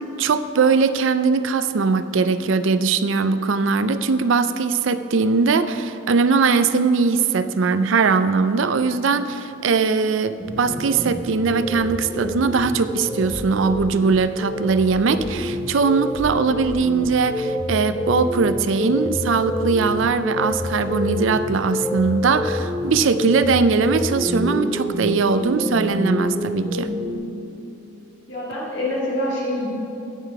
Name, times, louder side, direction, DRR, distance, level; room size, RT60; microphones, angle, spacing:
voice 1, 0.2-26.9, right 4 dB, 70° right, 12 dB, 0.4 m, -20 dB
sound 1, 10.4-27.1, left 1 dB, 10° left, 2.4 m, -28 dB
voice 2, 28.3-29.7, left 1 dB, 65° left, -5 dB, 2.2 m, -25 dB
16.0 x 5.8 x 4.7 m, 2.9 s
head